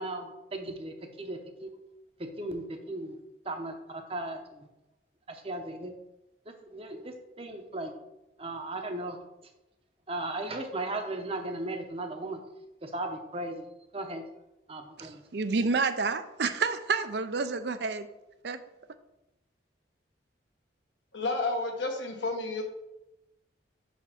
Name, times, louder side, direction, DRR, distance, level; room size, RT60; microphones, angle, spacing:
voice 1, 0.0-1.7 2.2-3.2 3.5-4.7 5.3-5.9 6.7-7.9 8.4-9.2 10.1-12.4 12.8-13.7 13.9-14.2 14.7-15.2, right 2 dB, 30° right, 5 dB, 0.8 m, -36 dB
voice 2, 15.0-18.1 18.4-18.6, right 4 dB, 60° right, 10 dB, 0.5 m, -29 dB
voice 3, 21.1-22.6, left 2 dB, 75° left, 3 dB, 1.1 m, -31 dB
5.7 x 4.3 x 5.7 m, 0.92 s
head